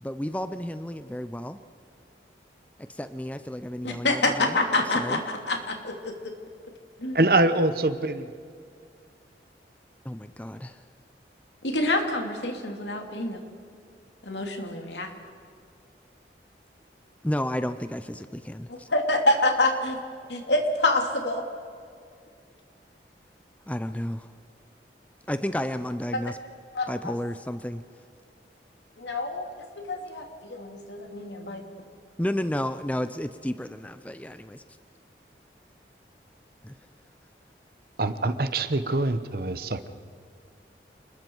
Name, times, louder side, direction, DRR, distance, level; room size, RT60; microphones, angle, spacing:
voice 1, 0.0-1.6 2.9-4.2 4.5-4.6 5.0-5.2 10.0-10.8 17.2-18.9 23.7-24.3 25.3-26.4 26.9-27.8 32.2-34.6 36.6-36.7, left 1 dB, 10° left, 11 dB, 0.5 m, -32 dB
voice 2, 3.8-5.2 5.5-6.3 7.0-7.2 11.6-13.4 14.2-15.1 18.7-20.0 20.3-21.4 26.1-26.2 26.7-27.1 29.0-31.6, left 2 dB, 85° left, 3 dB, 2.7 m, -27 dB
voice 3, 7.1-8.3 38.0-39.9, right 2 dB, 55° right, 11 dB, 1.0 m, -24 dB
29.0 x 20.5 x 4.6 m, 2.3 s
head